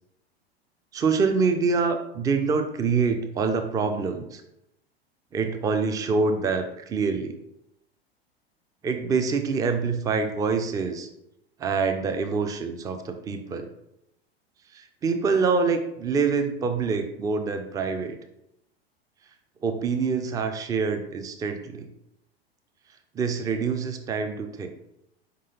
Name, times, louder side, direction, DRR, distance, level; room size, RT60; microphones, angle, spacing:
voice 1, 0.9-4.4 5.3-7.3 8.8-11.1 11.6-13.7 14.7-18.2 19.6-21.9 23.1-24.7, right 5 dB, 10° right, 7 dB, 0.3 m, -26 dB
4.7 x 3.7 x 2.8 m, 0.81 s
figure-of-eight pair, 90°, 31 cm